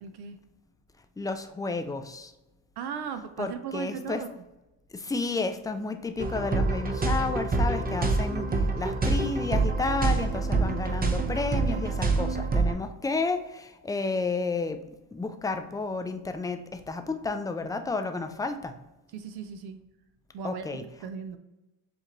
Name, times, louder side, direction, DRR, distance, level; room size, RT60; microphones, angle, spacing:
voice 1, 0.0-0.4 2.8-4.4 19.1-19.8 20.3-20.6 21.0-21.4, right 7 dB, 60° right, 9 dB, 0.6 m, -37 dB
voice 2, 1.2-2.3 3.4-4.2 4.9-14.8 15.1-18.7 20.4-20.8, left 3 dB, 10° left, 8 dB, 0.3 m, -31 dB
sound 1, 6.2-12.7, right 3 dB, 20° right, 0.7 m, -26 dB
7.0 x 2.5 x 3.0 m, 0.99 s
supercardioid pair, 80°, 43 cm